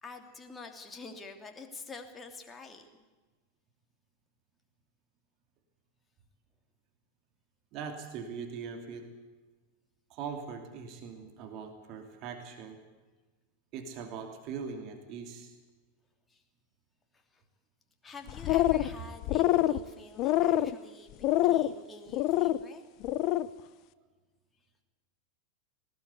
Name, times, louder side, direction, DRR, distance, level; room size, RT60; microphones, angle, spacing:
voice 1, 0.0-2.9 16.3-16.4 17.1-17.4 18.0-21.2 21.4-22.8, left 3 dB, 15° left, 4 dB, 2.9 m, -48 dB
voice 2, 7.7-9.1 10.1-12.8 13.7-15.5, right 6 dB, 40° right, 5 dB, 2.9 m, -41 dB
sound 1, 18.3-18.9 19.2-19.8 20.2-20.7 21.2-21.7 22.1-22.6 23.0-23.5, left 15 dB, 40° left, 0.7 m, -25 dB
19.5 x 19.0 x 8.4 m, 1.3 s
figure-of-eight pair, 90°, 0 cm